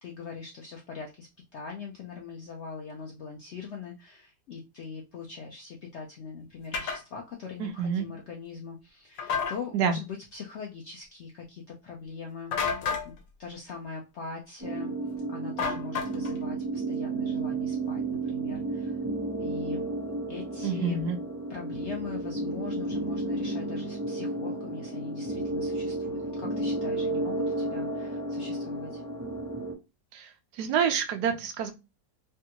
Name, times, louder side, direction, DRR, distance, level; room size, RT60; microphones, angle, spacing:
voice 1, 0.0-13.1 13.4-15.0 15.3-19.0 19.4-19.9 20.3-21.0 21.5-29.0, left 5 dB, 75° left, 0.6 m, -41 dB
sound 1, 6.7-7.0 9.2-9.6 12.5-13.1 15.6-16.4, left 5 dB, 90° left, 1.4 m, -30 dB
voice 2, 7.6-8.1 9.7-10.0 20.6-21.2 30.1-31.7, right 7 dB, 75° right, 1.1 m, -28 dB
sound 2, 14.6-29.7, right 2 dB, 15° right, 0.8 m, -32 dB
3.4 x 2.2 x 2.9 m
omnidirectional pair, 1.9 m